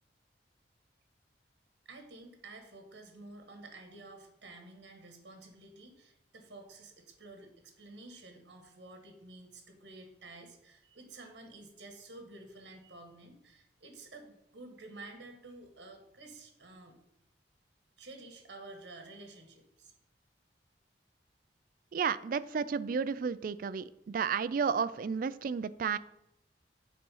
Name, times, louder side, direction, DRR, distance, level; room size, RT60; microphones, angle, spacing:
voice 1, 1.8-17.0 18.0-19.9, right 2 dB, 75° right, 4 dB, 1.4 m, -51 dB
voice 2, 21.9-26.0, right 6 dB, 50° right, 15 dB, 0.3 m, -32 dB
7.9 x 4.3 x 5.5 m, 0.78 s
head